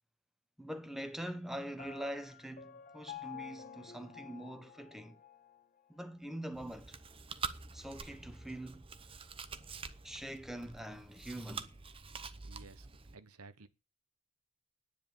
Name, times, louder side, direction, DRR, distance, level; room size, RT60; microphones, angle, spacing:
voice 1, 0.6-5.2 5.9-7.0 7.7-8.9 10.0-11.7, right 1 dB, ahead, 1.2 m, -44 dB
Piano, 1.8-5.6, left 9 dB, 35° left, 0.9 m, -50 dB
Chewing mastication, 6.5-13.2, right 5 dB, 25° right, 0.9 m, -46 dB
voice 2, 12.4-12.9 13.1-13.7, right 3 dB, 80° right, 1.1 m, -54 dB
10.5 x 9.9 x 7.3 m
head